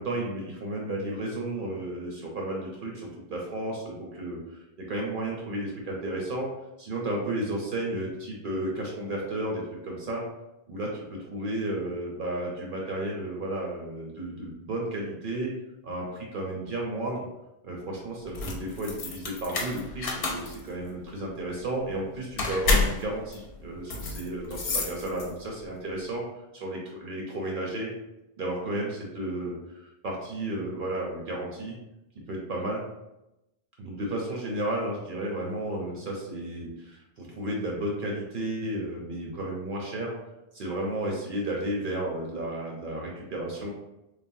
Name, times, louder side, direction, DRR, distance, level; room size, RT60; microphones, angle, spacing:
voice 1, 0.0-6.5 6.8-10.2 10.7-15.5 15.8-17.3 17.6-26.2 26.5-27.9 28.4-31.7 32.3-32.8 33.8-40.1 40.5-43.7, right 1 dB, 60° right, -1 dB, 0.7 m, -33 dB
sound 1, 18.2-25.6, left 3 dB, 65° left, 0.8 m, -30 dB
3.2 x 2.1 x 2.6 m, 0.91 s
omnidirectional pair, 1.1 m